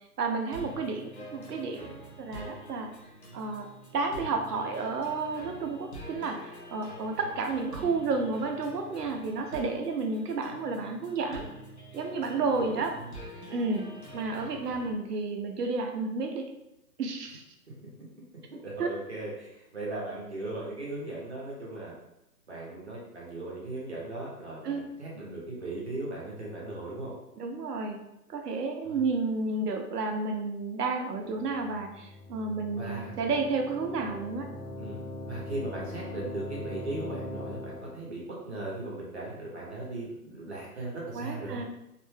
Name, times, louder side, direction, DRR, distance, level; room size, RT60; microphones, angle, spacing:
voice 1, 0.2-1.9 2.2-2.9 3.3-3.7 3.9-11.4 11.9-13.0 13.5-13.8 14.1-16.5 17.0-17.4 18.8-18.9 24.6-24.9 27.4-28.0 28.3-34.5 41.1-41.6, right 3 dB, 75° right, 4 dB, 0.6 m, -31 dB
sound 1, 0.5-14.9, right 1 dB, 45° left, 0.5 m, -46 dB
voice 2, 12.6-13.1 17.8-17.9 18.6-21.9 22.5-27.1 28.8-29.0 32.8-33.1 34.8-41.6, right 2 dB, 45° right, -4 dB, 0.8 m, -38 dB
sound 2, 31.2-38.0, left 1 dB, 20° left, 0.9 m, -41 dB
2.5 x 2.1 x 3.1 m, 0.86 s
hypercardioid pair, 180°, 48 cm